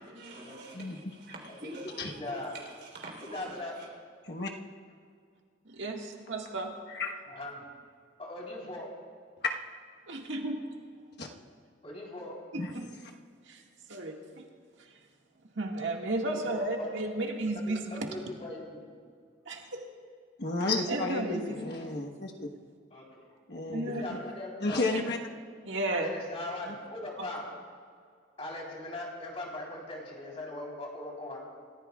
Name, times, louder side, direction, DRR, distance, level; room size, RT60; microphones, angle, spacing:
voice 1, 0.1-3.9, right 1 dB, 65° right, 3.6 m, -46 dB
voice 2, 1.5-2.5 3.3-3.8 7.3-7.7 8.2-9.1 11.8-12.4 16.2-17.3 17.7-18.9 22.9-23.4 23.8-25.1 26.0-27.6 28.4-31.4, left 1 dB, 35° left, 3.7 m, -40 dB
voice 3, 5.6-6.7 10.1-10.8 12.5-12.9 13.5-13.6 13.9-14.4 14.8-15.0 15.5-18.1 19.4-19.8 20.9-21.7 23.7-24.0 25.6-26.1 27.2-27.3, right 2 dB, 85° right, 1.9 m, -34 dB
voice 4, 20.4-22.5 23.5-24.2 24.6-25.2 26.7-26.8, left 3 dB, 60° left, 1.3 m, -32 dB
27.5 x 15.0 x 2.4 m
head